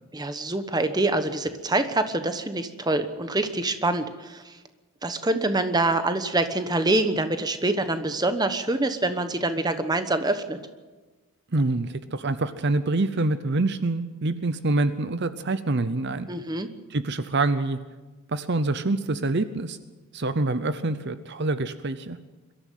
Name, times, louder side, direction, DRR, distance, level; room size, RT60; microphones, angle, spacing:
voice 1, 0.1-4.5 5.0-10.6 16.3-16.7, right 2 dB, 20° right, 9 dB, 1.1 m, -25 dB
voice 2, 11.5-16.3 16.9-17.8 18.3-19.8 20.1-22.2, right 2 dB, 50° right, 12 dB, 0.7 m, -26 dB
22.5 x 13.0 x 9.3 m, 1.3 s
head